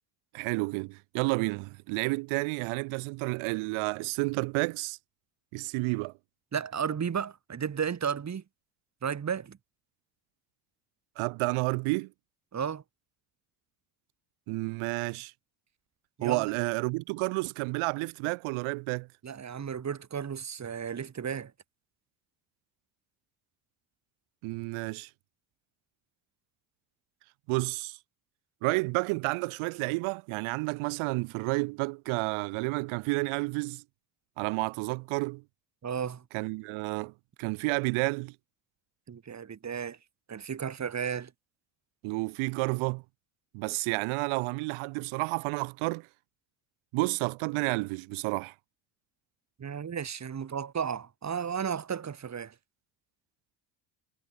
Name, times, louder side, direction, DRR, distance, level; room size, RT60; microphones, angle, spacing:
voice 1, 0.3-5.0 5.5-6.1 11.2-12.1 14.5-15.3 16.2-19.1 24.4-25.1 27.5-28.0 28.6-33.8 34.4-35.4 36.3-37.1 37.4-38.3 42.0-43.0 43.5-46.1 46.9-48.5, right 27 dB, 80° right, 1.1 m, -30 dB
voice 2, 6.5-8.4 9.0-9.6 12.5-12.8 16.2-16.4 19.2-21.5 35.8-36.2 39.1-40.0 40.3-41.3 49.6-52.5, right 7 dB, 35° right, 2.2 m, -33 dB
supercardioid pair, 85°, 48 cm